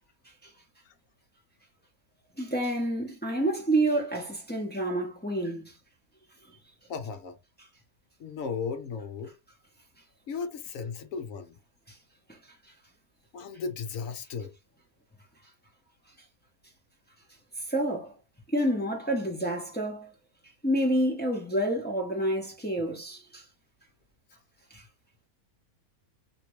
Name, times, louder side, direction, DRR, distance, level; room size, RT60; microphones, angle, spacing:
voice 1, 2.4-5.7 12.3-12.4 17.7-18.1 18.5-20.1 20.6-23.4 24.7-24.8, right 1 dB, 15° left, 0.3 m, -28 dB
voice 2, 6.9-7.4 8.2-9.3 10.3-11.6 13.3-14.5, left 5 dB, 65° left, 1.0 m, -35 dB
3.0 x 2.8 x 3.0 m
omnidirectional pair, 1.6 m